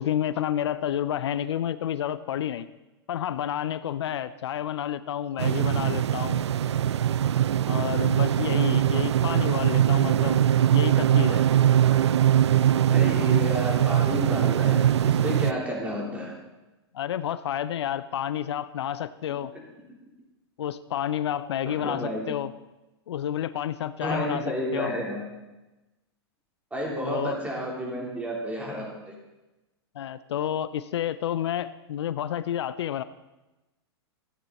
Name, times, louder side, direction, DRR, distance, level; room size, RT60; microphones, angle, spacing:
voice 1, 0.0-2.7 3.1-6.4 7.7-10.4 10.7-11.5 16.9-19.5 20.6-22.5 23.1-24.9 27.0-27.3 30.0-33.0, left 10 dB, 75° left, 15 dB, 0.5 m, -30 dB
sound 1, 5.4-15.5, right 10 dB, 85° right, 0.4 m, -22 dB
voice 2, 12.9-16.4 21.7-22.3 24.0-25.2 26.7-29.1, equal, 10° right, -3 dB, 3.6 m, -31 dB
14.0 x 9.1 x 4.1 m, 1.0 s
hypercardioid pair, 110°, 14 cm